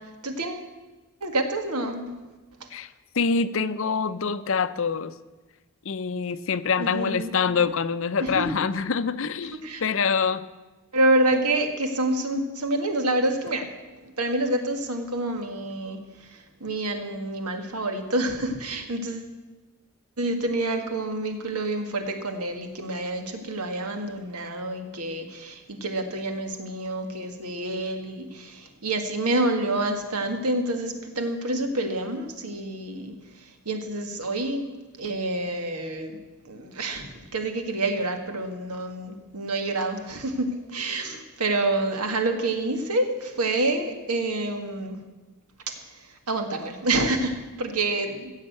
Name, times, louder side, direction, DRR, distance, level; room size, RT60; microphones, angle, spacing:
voice 1, 0.2-0.7 1.2-2.1 6.8-7.3 8.2-8.6 9.6-9.8 10.9-13.7 14.0-19.3 20.2-34.7 35.0-36.2 36.5-45.0 46.1-48.3, right 2 dB, 85° right, 5 dB, 1.8 m, -28 dB
voice 2, 3.2-5.1 5.9-10.5, left 5 dB, 60° left, 14 dB, 0.6 m, -25 dB
15.5 x 7.5 x 7.9 m, 1.2 s
head